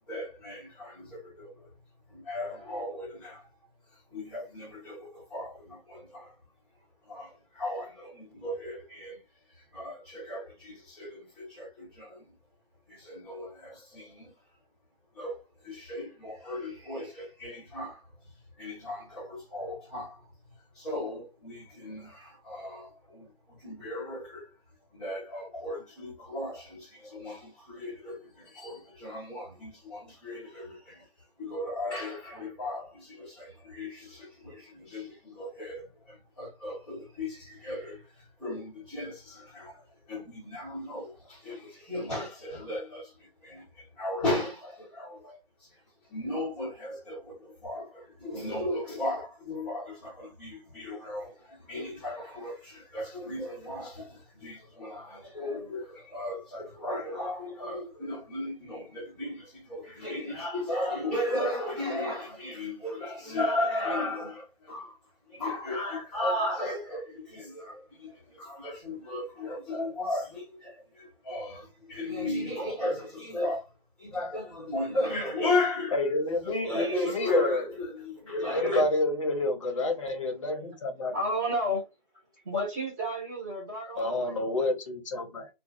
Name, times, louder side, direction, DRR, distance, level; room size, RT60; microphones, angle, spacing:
voice 1, 0.1-1.7 2.1-3.5 4.1-6.3 7.0-9.2 9.6-12.2 12.9-14.3 15.1-18.0 18.6-20.3 20.7-24.5 24.9-31.1 31.4-45.7 46.1-65.0 65.3-73.7 74.0-76.0 76.4-78.8, left 1 dB, 5° left, 0.8 m, -36 dB
voice 2, 75.9-77.6 78.4-81.1 83.9-85.5, left 2 dB, 35° left, 0.9 m, -28 dB
voice 3, 81.1-81.8 82.4-84.4, equal, 20° right, 1.1 m, -31 dB
2.4 x 2.3 x 3.9 m
hypercardioid pair, 165°, 29 cm